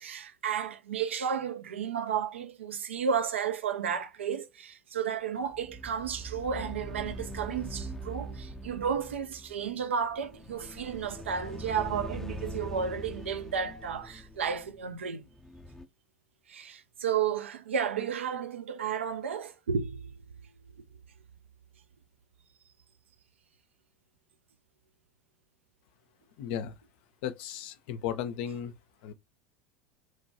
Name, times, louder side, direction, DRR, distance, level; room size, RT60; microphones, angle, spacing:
voice 1, 0.0-15.2 16.5-20.1, right 7 dB, 75° right, 0.5 m, -32 dB
sound 1, 5.5-15.9, right 1 dB, 5° left, 0.5 m, -42 dB
voice 2, 26.4-26.7 27.2-28.7 29.0-29.1, left 9 dB, 55° left, 0.4 m, -35 dB
3.1 x 2.2 x 2.8 m
figure-of-eight pair, 75°, 7 cm